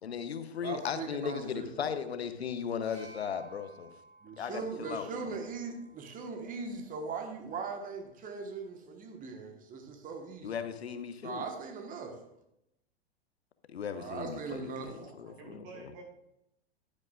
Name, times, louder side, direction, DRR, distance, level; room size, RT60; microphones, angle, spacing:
voice 1, 0.0-3.9 4.4-5.4 10.4-11.4 13.7-15.9, left 7 dB, 75° left, 0.9 m, -37 dB
voice 2, 0.6-1.7 4.2-10.6 11.2-12.3 13.9-15.0, right 4 dB, 25° right, 1.4 m, -40 dB
sound 1, 2.8-6.6 7.7-7.8, right 2 dB, 75° right, 2.9 m, -56 dB
voice 3, 14.8-16.0, right 4 dB, 40° right, 2.3 m, -50 dB
10.5 x 10.0 x 2.5 m
figure-of-eight pair, 95°, 33 cm